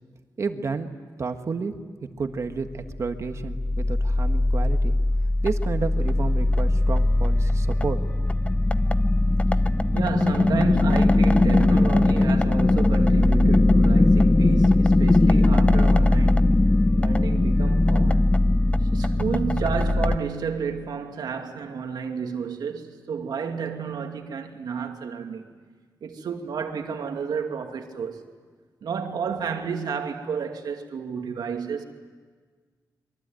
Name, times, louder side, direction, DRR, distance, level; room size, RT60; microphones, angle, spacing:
voice 1, 0.4-0.9 1.2-1.7 2.2-4.9 5.4-8.1, right 4 dB, 45° right, 1.7 m, -31 dB
sound 1, 2.8-20.2, left 2 dB, 20° left, 0.7 m, -20 dB
voice 2, 9.9-16.5 17.0-18.3 18.8-25.5 26.0-28.2 28.8-31.8, right 6 dB, 90° right, 2.4 m, -31 dB
27.0 x 23.0 x 9.2 m
wide cardioid pair, 140°, 7 cm